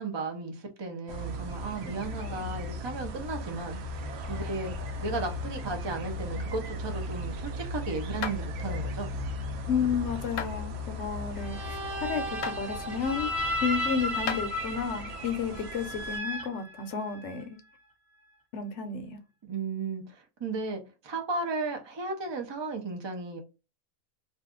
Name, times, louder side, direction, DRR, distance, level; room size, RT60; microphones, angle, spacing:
voice 1, 0.0-3.9 4.3-4.7 5.0-9.1 19.4-23.4, right 3 dB, 45° right, 0.3 m, -35 dB
sound 1, 1.1-16.2, left 1 dB, 65° right, 0.7 m, -37 dB
voice 2, 2.2-2.5 9.7-13.3 13.6-17.6 18.5-19.2, left 6 dB, 65° left, 0.8 m, -32 dB
sound 2, 8.2-8.4 10.4-10.6 12.4-12.6 14.3-14.4, left 8 dB, 90° left, 1.0 m, -32 dB
sound 3, 11.4-17.4, equal, ahead, 0.6 m, -34 dB
2.6 x 2.3 x 3.6 m
omnidirectional pair, 1.4 m